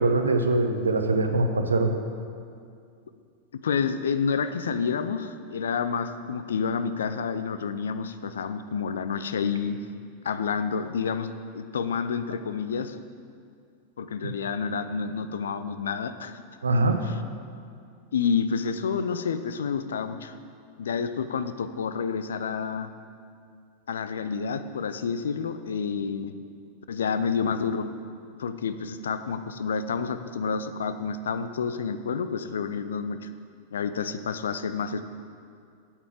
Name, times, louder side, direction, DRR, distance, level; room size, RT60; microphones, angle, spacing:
voice 1, 0.0-1.9 14.2-14.3 16.6-17.0, right 2 dB, 75° right, 6 dB, 0.9 m, -23 dB
voice 2, 3.5-9.8 10.2-13.0 14.0-16.4 17.0-17.2 18.1-20.3 20.8-22.9 23.9-26.3 26.9-27.9 28.4-33.3 33.7-35.0, left 6 dB, 65° left, 11 dB, 0.6 m, -29 dB
8.6 x 7.3 x 7.7 m, 2.3 s
figure-of-eight pair, 90°, 0 cm